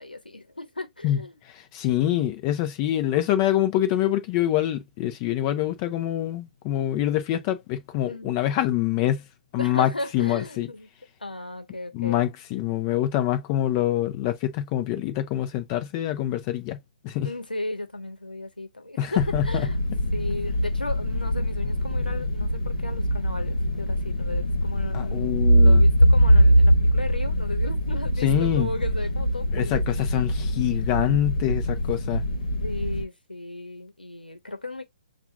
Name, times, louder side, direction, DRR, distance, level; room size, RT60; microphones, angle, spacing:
voice 1, 0.0-1.4 8.1-8.4 9.6-10.9 11.2-12.3 17.2-19.8 20.1-29.8 32.6-34.9, left 2 dB, 90° left, 1.1 m, -35 dB
voice 2, 1.5-9.2 9.5-10.7 11.9-16.8 17.0-17.3 19.0-19.7 24.9-25.9 28.2-28.7 29.5-32.2, left 12 dB, 30° left, 0.7 m, -25 dB
sound 1, 19.2-33.0, equal, 55° left, 1.3 m, -22 dB
7.0 x 2.5 x 2.3 m
figure-of-eight pair, 130°, 5 cm